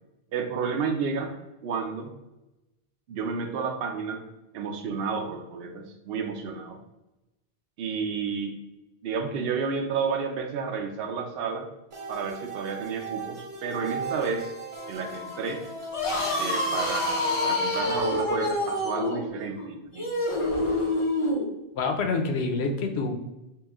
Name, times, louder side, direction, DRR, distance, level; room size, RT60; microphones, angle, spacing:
voice 1, 0.3-1.3 1.6-2.1 3.1-4.2 4.5-6.8 7.8-8.6 9.0-11.7 12.1-14.5 14.9-15.6 16.4-20.1, right 5 dB, 70° right, 3 dB, 0.7 m, -31 dB
sound 1, 11.9-17.6, right 3 dB, 35° right, 0.6 m, -38 dB
sound 2, 15.8-21.5, left 1 dB, 35° left, 0.7 m, -27 dB
voice 2, 21.7-23.2, left 3 dB, 80° left, 4 dB, 0.9 m, -27 dB
3.1 x 3.0 x 3.5 m, 0.97 s
omnidirectional pair, 1.1 m